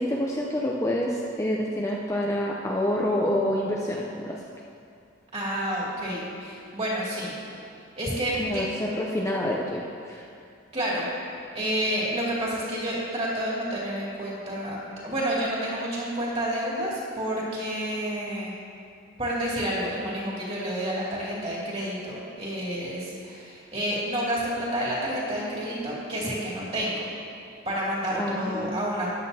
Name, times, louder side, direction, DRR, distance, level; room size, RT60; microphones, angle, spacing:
voice 1, 0.0-4.4 8.4-10.3 28.1-28.7, left 1 dB, 15° left, -3 dB, 0.5 m, -27 dB
voice 2, 5.3-7.4 8.0-8.6 10.7-11.1 11.5-18.5 19.2-27.1 27.7-29.1, equal, 30° right, -6 dB, 2.5 m, -29 dB
13.5 x 9.3 x 2.8 m, 2.4 s
head